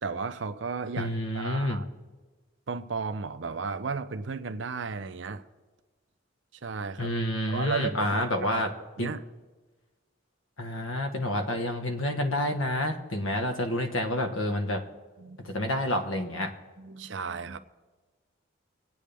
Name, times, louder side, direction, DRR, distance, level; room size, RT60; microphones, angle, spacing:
voice 1, 0.0-1.9 2.7-5.4 6.6-7.1 7.5-8.7 9.0-9.2 15.2-15.6 16.8-17.6, right 5 dB, 70° right, 0.6 m, -34 dB
voice 2, 1.0-1.8 7.0-8.7 9.0-9.1 10.6-14.8 15.4-16.5, left 1 dB, 85° left, 1.4 m, -29 dB
24.0 x 8.5 x 3.5 m
head